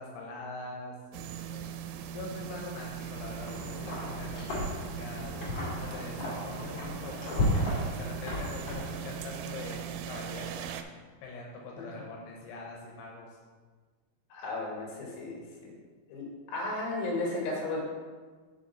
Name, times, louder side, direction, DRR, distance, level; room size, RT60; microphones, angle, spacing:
voice 1, 0.0-1.7 2.1-5.3 5.8-7.5 8.0-10.8 11.2-13.4, left 3 dB, 80° left, -1 dB, 3.2 m, -43 dB
sound 1, 1.1-10.8, right 9 dB, 90° right, 3.0 m, -40 dB
Wind, 2.8-9.3, left 1 dB, 45° left, 2.9 m, -34 dB
voice 2, 14.3-15.7 16.1-17.8, left 2 dB, 60° left, -3 dB, 3.2 m, -34 dB
6.8 x 6.2 x 4.1 m, 1.5 s
omnidirectional pair, 5.4 m